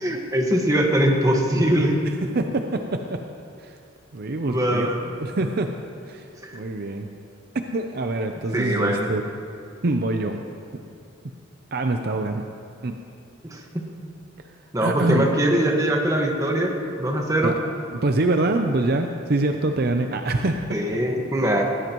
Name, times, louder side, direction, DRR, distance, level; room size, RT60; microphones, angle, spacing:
voice 1, 0.0-1.9 4.4-5.0 6.4-6.6 8.5-9.1 13.5-13.8 14.7-17.5 20.7-21.6, right 1 dB, 15° right, 0 dB, 1.5 m, -22 dB
voice 2, 2.0-3.2 3.6-3.8 4.1-5.7 6.1-7.1 7.7-9.2 9.8-10.4 11.7-12.5 12.8-13.0 14.8-15.3 17.4-17.6 17.9-20.8, right 2 dB, 50° right, 5 dB, 0.6 m, -25 dB
19.5 x 16.0 x 3.1 m, 2.5 s
head